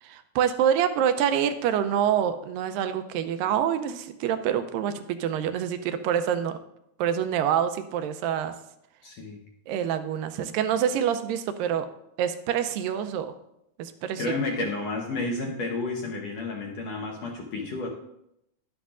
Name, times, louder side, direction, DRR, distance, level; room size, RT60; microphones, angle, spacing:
voice 1, 0.0-6.6 7.0-8.5 9.7-11.9 12.2-13.3 13.8-14.3, right 9 dB, 80° right, 10 dB, 2.1 m, -26 dB
voice 2, 9.0-9.4 10.4-10.5 14.2-17.9, left 2 dB, 75° left, 1 dB, 1.6 m, -31 dB
11.5 x 10.0 x 2.4 m, 0.81 s
omnidirectional pair, 4.3 m